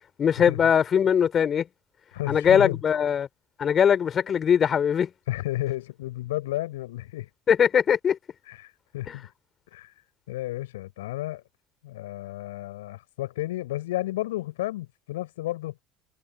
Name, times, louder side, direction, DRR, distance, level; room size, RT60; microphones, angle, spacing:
voice 1, 0.2-1.6 2.3-3.3 3.6-5.1 7.5-8.2, left 8 dB, 35° left, 3.8 m, -21 dB
voice 2, 2.1-2.8 5.3-7.3 8.4-9.3 9.7-11.4 11.8-15.8, left 16 dB, 70° left, 6.9 m, -32 dB
figure-of-eight pair, 65°, 0 cm